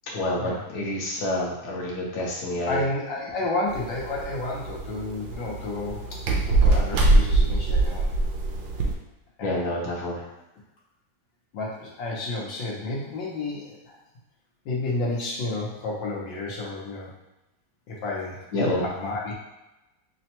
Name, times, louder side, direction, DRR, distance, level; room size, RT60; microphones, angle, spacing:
voice 1, 0.1-2.8 9.4-10.2 18.5-18.8, left 1 dB, 60° left, -4 dB, 1.4 m, -28 dB
voice 2, 2.6-8.1 9.4-9.6 11.5-14.0 14.6-17.1 17.9-19.3, left 2 dB, 80° left, -4 dB, 1.6 m, -31 dB
sound 1, 3.7-8.9, right 2 dB, 80° right, 1.3 m, -23 dB
5.9 x 2.2 x 2.9 m, 0.96 s
omnidirectional pair, 2.0 m